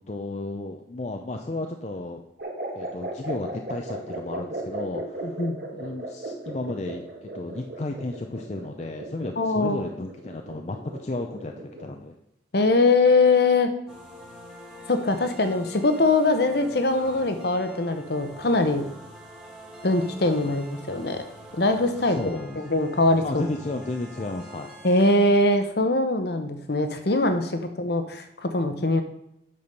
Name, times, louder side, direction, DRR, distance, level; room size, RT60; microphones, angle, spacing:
voice 1, 0.1-2.2 2.7-5.4 5.7-12.2 20.4-20.5 22.1-22.6 23.2-24.7 27.6-27.7, left 2 dB, 35° left, 4 dB, 0.5 m, -33 dB
sound 1, 2.4-12.0, right 1 dB, 50° right, 1.7 m, -36 dB
voice 2, 9.4-9.8 12.5-13.7 14.9-18.8 19.8-21.2 21.6-22.2 22.6-23.4 24.8-29.0, left 2 dB, 55° left, 7 dB, 0.9 m, -22 dB
sound 2, 13.9-25.2, equal, 5° right, 1.6 m, -45 dB
8.6 x 6.1 x 5.3 m, 0.82 s
head